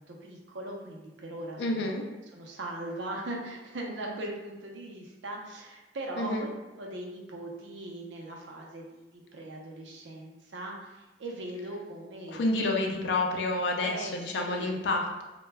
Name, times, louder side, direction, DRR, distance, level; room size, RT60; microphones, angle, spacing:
voice 1, 0.0-1.9 2.3-6.5 6.8-8.9 9.1-12.7 13.8-14.1 14.4-14.7, right 1 dB, 80° right, -1 dB, 0.6 m, -40 dB
voice 2, 1.6-2.0 6.2-6.5 12.3-15.2, left 2 dB, 70° left, 1 dB, 0.4 m, -29 dB
2.2 x 2.1 x 3.3 m, 1.1 s
head